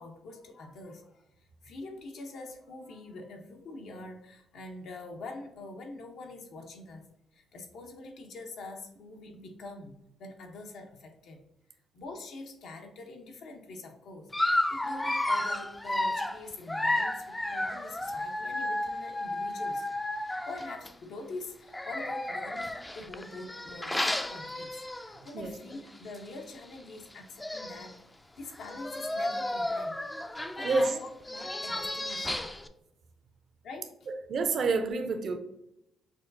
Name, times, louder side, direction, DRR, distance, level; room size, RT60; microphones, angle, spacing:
voice 1, 0.0-7.0 7.3-11.4 11.7-19.9 20.2-28.0 28.4-30.0 30.3-32.5 33.6-33.9, left 2 dB, 75° left, 3 dB, 0.8 m, -45 dB
Dog, 14.3-20.9 21.7-25.3 25.7-25.9 26.1-26.2 27.1-27.2 27.4-27.9 28.6-32.7, left 1 dB, 10° left, 0.3 m, -32 dB
voice 2, 34.1-35.4, right 3 dB, 55° right, 7 dB, 0.5 m, -28 dB
6.0 x 2.3 x 2.6 m, 0.82 s
cardioid pair, 90°, 0 cm